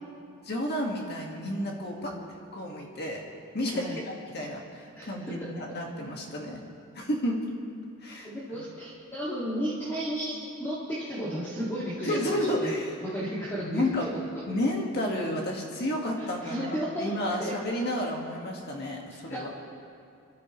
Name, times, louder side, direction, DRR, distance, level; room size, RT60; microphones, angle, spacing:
voice 1, 0.4-2.1 2.5-3.2 3.5-6.6 6.9-7.4 8.0-8.3 12.0-12.9 13.6-14.1 14.5-19.5, left 1 dB, 50° left, -1 dB, 2.0 m, -31 dB
voice 2, 4.9-5.5 8.2-12.7 13.0-14.2 16.2-17.1 17.4-17.5 19.3-19.5, equal, 10° left, -9 dB, 2.4 m, -34 dB
28.0 x 13.0 x 3.3 m, 2.4 s
head